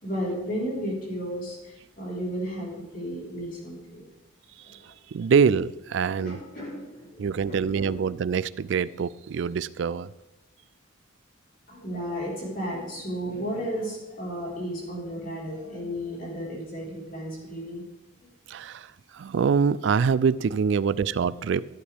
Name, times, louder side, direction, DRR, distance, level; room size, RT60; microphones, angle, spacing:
voice 1, 0.0-4.0 4.6-4.8 6.0-8.0 11.7-17.8, equal, 40° left, -4 dB, 4.3 m, -34 dB
voice 2, 5.1-6.4 7.2-10.1 18.5-21.7, right 6 dB, 60° right, 18 dB, 0.3 m, -25 dB
16.0 x 8.7 x 3.5 m, 1.1 s
head